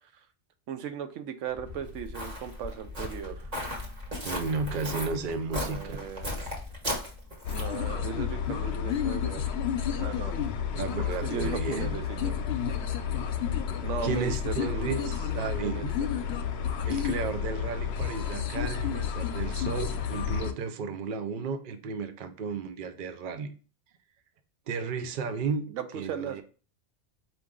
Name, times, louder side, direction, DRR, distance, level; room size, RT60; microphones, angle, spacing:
voice 1, 0.7-3.5 5.5-6.3 7.5-9.5 10.0-10.3 11.1-12.4 13.8-15.1 15.6-15.8 25.7-26.4, right 8 dB, 85° right, 9 dB, 0.9 m, -37 dB
Walk footsteps, 1.6-7.8, left 1 dB, 35° right, 1.3 m, -36 dB
voice 2, 4.2-6.1 10.7-12.0 14.0-15.9 16.8-23.5 24.7-26.4, right 5 dB, 55° right, 8 dB, 0.7 m, -34 dB
sound 1, 7.4-20.5, left 8 dB, 65° left, 0.8 m, -31 dB
4.5 x 2.6 x 3.6 m, 0.38 s
omnidirectional pair, 1.2 m